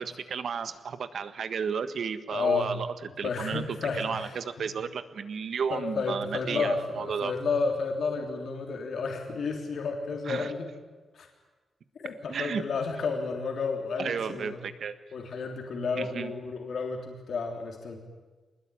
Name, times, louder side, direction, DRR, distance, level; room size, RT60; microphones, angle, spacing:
voice 1, 0.0-2.9 3.2-3.6 3.9-7.3 10.3-10.5 12.3-12.6 14.0-14.9 16.0-16.3, right 6 dB, 60° right, 11 dB, 1.6 m, -33 dB
voice 2, 2.3-2.7 3.2-4.7 5.7-10.7 11.1-11.3 12.0-14.6 15.1-18.1, left 4 dB, 65° left, 2 dB, 3.4 m, -31 dB
25.5 x 20.5 x 9.9 m, 1.3 s
wide cardioid pair, 155°, 0 cm